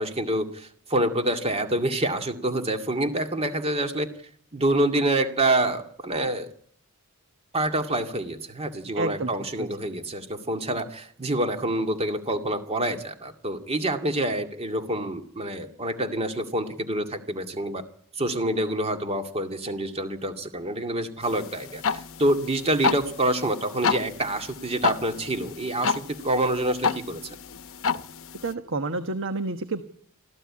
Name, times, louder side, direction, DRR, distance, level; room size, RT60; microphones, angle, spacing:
voice 1, 0.0-4.1 4.5-6.5 7.5-17.8 18.2-27.4, right 1 dB, 30° right, 6 dB, 2.2 m, -27 dB
voice 2, 9.0-9.3 9.6-9.7 28.4-29.8, right 3 dB, 60° right, 9 dB, 1.3 m, -29 dB
sound 1, 21.2-28.5, left 5 dB, 65° left, 0.9 m, -30 dB
25.5 x 15.0 x 8.7 m, 0.62 s
head